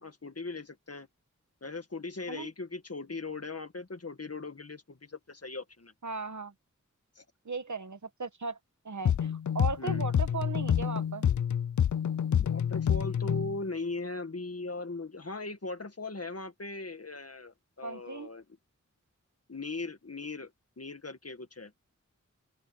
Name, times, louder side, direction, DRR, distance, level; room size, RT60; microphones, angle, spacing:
voice 1, 0.0-1.1 1.6-5.9 7.2-7.3 9.8-10.0 12.4-18.4 19.5-20.5 20.8-21.7, left 3 dB, 50° left, 1.8 m, -39 dB
voice 2, 6.0-6.5 7.4-8.6 8.8-11.3 17.8-18.3, right 4 dB, 70° right, 1.3 m, -37 dB
sound 1, 9.0-13.6, left 9 dB, 70° left, 0.5 m, -28 dB
open air
wide cardioid pair, 60°, 31 cm